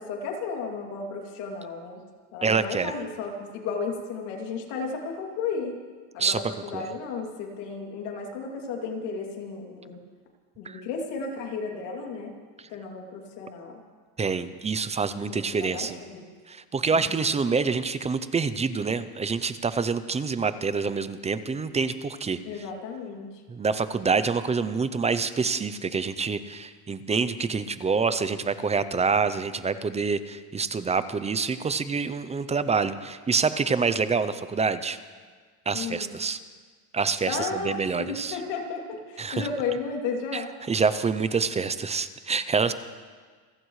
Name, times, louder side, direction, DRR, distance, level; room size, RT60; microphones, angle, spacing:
voice 1, 0.0-2.0 2.3-5.7 6.1-10.0 10.6-12.3 12.7-13.8 15.3-16.3 17.0-17.1 22.4-23.4 35.7-36.1 37.3-40.5, left 4 dB, 80° left, 1 dB, 2.9 m, -33 dB
voice 2, 2.4-2.9 6.2-6.4 6.7-6.9 10.6-10.8 14.2-16.0 16.5-22.4 23.5-35.0 35.7-36.4 36.9-38.4 39.2-39.5 40.3-40.4 40.7-42.7, right 5 dB, 15° right, 13 dB, 0.5 m, -26 dB
28.0 x 15.5 x 3.2 m, 1.5 s
cardioid pair, 130°, 44 cm